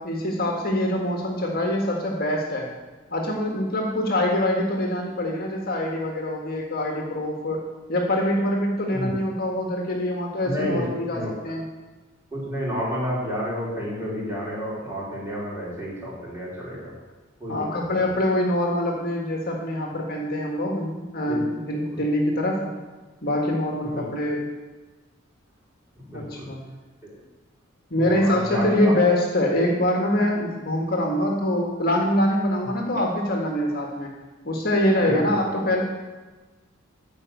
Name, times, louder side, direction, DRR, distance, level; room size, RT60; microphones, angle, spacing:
voice 1, 0.0-2.7 3.1-7.6 7.9-11.6 17.5-22.7 23.2-24.4 26.1-26.6 27.9-34.1 34.4-35.8, left 1 dB, 45° left, 0 dB, 1.7 m, -24 dB
voice 2, 10.4-11.3 12.3-16.9 17.4-17.6 18.0-18.1 21.2-21.4 21.7-22.0 23.9-24.1 26.0-26.5 27.9-28.9 32.6-32.7 35.0-35.3, equal, 10° right, -7 dB, 4.4 m, -30 dB
13.0 x 5.3 x 9.3 m, 1.3 s
head